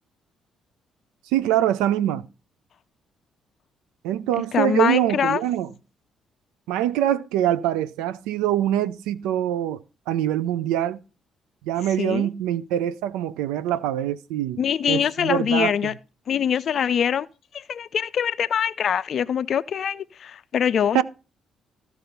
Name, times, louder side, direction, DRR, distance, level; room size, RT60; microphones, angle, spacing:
voice 1, 1.3-2.3 4.0-5.7 6.7-9.8 10.1-11.0 11.6-14.6 14.9-15.7 20.9-21.0, right 11 dB, 75° right, 0.4 m, -24 dB
voice 2, 4.5-5.4 12.0-12.3 14.6-15.9 16.3-17.3 17.5-21.0, left 8 dB, 55° left, 0.4 m, -23 dB
13.5 x 4.7 x 5.4 m
hypercardioid pair, 45°, 0 cm